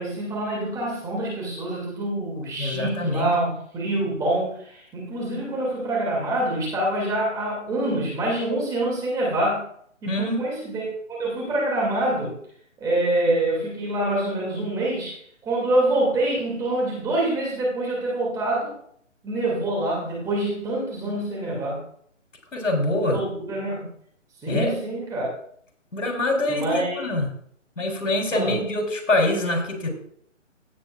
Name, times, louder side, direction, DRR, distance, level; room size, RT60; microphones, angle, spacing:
voice 1, 0.0-9.6 10.0-12.3 12.8-18.7 19.2-21.8 23.0-23.8 24.4-25.3 26.5-27.2 28.3-28.6, right 1 dB, 10° right, -4 dB, 2.6 m, -26 dB
voice 2, 2.6-3.3 10.1-10.4 22.5-23.2 24.5-24.8 25.9-27.3 27.8-29.9, left 2 dB, 80° left, 2 dB, 3.9 m, -24 dB
17.0 x 8.1 x 2.5 m, 0.63 s
figure-of-eight pair, 155°, 38 cm